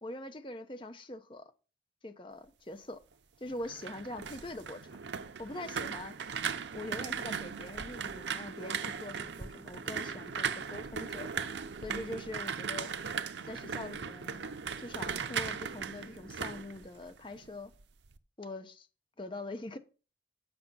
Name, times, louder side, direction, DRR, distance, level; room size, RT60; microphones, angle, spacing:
voice 1, 0.0-1.5 2.0-3.0 3.4-4.8 5.4-6.2 6.7-11.5 11.8-12.9 13.4-14.5 14.8-17.7 18.4-18.9 19.2-19.8, left 2 dB, 30° left, 0.9 m, -43 dB
sound 1, 3.5-17.5 17.8-18.2, right 6 dB, 85° right, 0.7 m, -38 dB
8.0 x 5.9 x 5.6 m
head